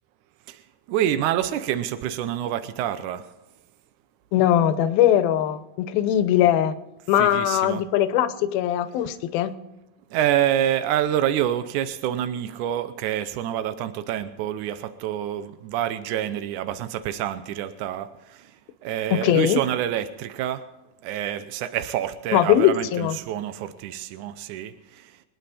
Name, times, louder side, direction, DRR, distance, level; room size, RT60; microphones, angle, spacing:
voice 1, 0.9-3.2 7.2-7.8 10.1-18.5 18.8-20.6 21.0-25.1, right 11 dB, 80° right, 11 dB, 1.8 m, -27 dB
voice 2, 4.3-6.7 7.1-9.5 19.1-19.6 22.3-23.2, left 11 dB, 80° left, 11 dB, 2.7 m, -20 dB
26.0 x 9.6 x 4.2 m, 1.0 s
omnidirectional pair, 4.4 m